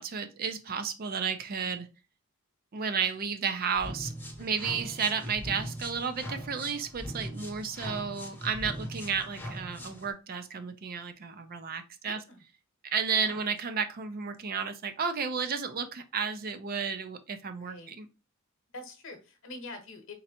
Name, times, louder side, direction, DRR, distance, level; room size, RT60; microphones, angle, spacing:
voice 1, 0.0-1.9 2.7-4.1 4.4-12.2 12.8-18.1, right 6 dB, 40° right, 9 dB, 0.4 m, -32 dB
sound 1, 3.7-10.1, equal, 10° left, 0.7 m, -40 dB
voice 2, 4.4-4.7 12.0-12.4 13.1-13.4 17.6-17.9 18.7-20.1, left 2 dB, 60° left, 6 dB, 1.0 m, -45 dB
3.9 x 3.2 x 2.8 m, 0.30 s
head